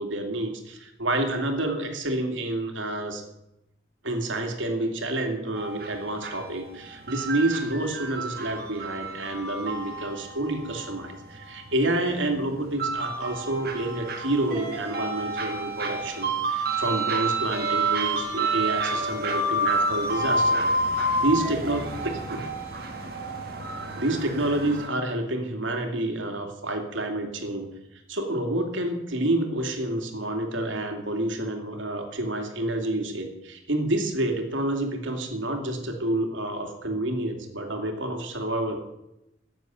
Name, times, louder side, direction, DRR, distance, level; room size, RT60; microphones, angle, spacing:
voice 1, 0.0-3.2 4.0-22.4 24.0-27.7 28.1-38.8, right 1 dB, 90° right, 4 dB, 2.6 m, -29 dB
sound 1, 5.6-24.9, right 2 dB, 50° right, 2.1 m, -29 dB
13.5 x 7.5 x 9.2 m, 0.88 s
head